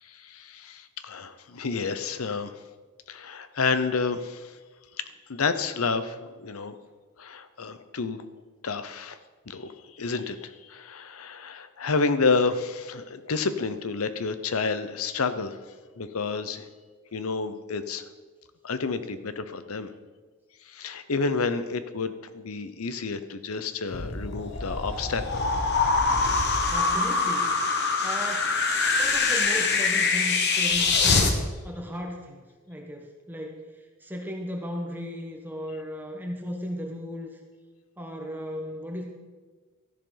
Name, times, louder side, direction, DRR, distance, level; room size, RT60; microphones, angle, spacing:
voice 1, 0.0-2.5 3.1-4.6 5.0-6.7 7.2-8.2 8.6-9.2 9.5-15.6 16.0-16.7 17.1-18.0 18.6-19.9 20.6-25.5, left 4 dB, 85° left, 11 dB, 0.8 m, -30 dB
sound 1, 23.9-31.3, left 4 dB, 55° left, 1.2 m, -24 dB
voice 2, 26.7-27.5 28.0-28.5 28.9-31.3 31.6-37.4 38.0-39.0, equal, 10° right, 1 dB, 1.2 m, -36 dB
13.0 x 11.0 x 3.9 m, 1.3 s
head